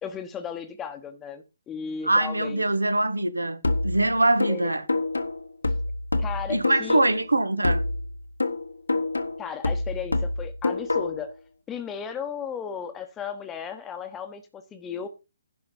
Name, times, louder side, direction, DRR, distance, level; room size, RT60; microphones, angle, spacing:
voice 1, 0.0-2.6 4.5-4.6 6.2-7.2 9.4-11.3 11.7-15.1, left 7 dB, 15° left, 1.0 m, -35 dB
voice 2, 2.0-4.8 6.5-7.8, right 2 dB, 80° right, 1.2 m, -23 dB
sound 1, 3.6-7.3 7.6-11.3, left 2 dB, 80° left, 1.4 m, -27 dB
11.0 x 5.7 x 5.2 m
figure-of-eight pair, 135°, 0 cm